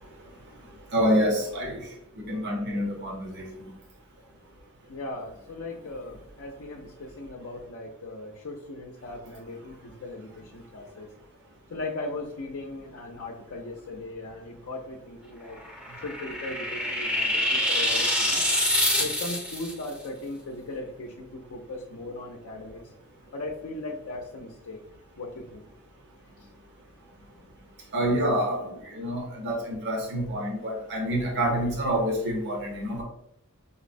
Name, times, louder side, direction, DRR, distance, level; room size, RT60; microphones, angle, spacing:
voice 1, 0.9-1.8 2.2-3.4 27.9-28.6 28.9-33.0, equal, 50° right, -1 dB, 0.8 m, -27 dB
voice 2, 4.9-11.1 11.7-15.6 16.0-18.4 19.0-22.9 23.3-24.8 25.2-25.6, left 2 dB, 60° left, 0 dB, 0.5 m, -38 dB
sound 1, 15.6-19.7, left 1 dB, 5° right, 0.6 m, -26 dB
5.2 x 2.0 x 2.5 m, 0.77 s
head